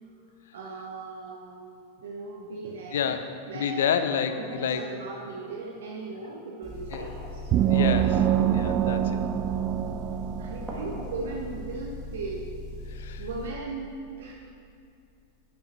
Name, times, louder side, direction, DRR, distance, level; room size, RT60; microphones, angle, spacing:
voice 1, 0.5-1.7 2.0-3.1 3.5-3.9 4.4-7.5 10.1-12.5 13.2-14.3, right 3 dB, 60° right, -1 dB, 0.8 m, -38 dB
voice 2, 2.9-4.9 6.9-7.1 7.7-8.3 8.5-9.2 12.9-13.2, left 7 dB, 60° left, 9 dB, 0.5 m, -29 dB
Motor vehicle (road) / Engine, 6.6-13.5, left 2 dB, 35° left, 2.0 m, -40 dB
sound 1, 6.9-8.6 10.6-13.2 13.5-13.6, right 1 dB, 10° right, 1.6 m, -46 dB
sound 2, 7.5-11.1, right 10 dB, 35° right, 0.3 m, -25 dB
9.1 x 6.5 x 4.1 m, 2.4 s
figure-of-eight pair, 90°, 0 cm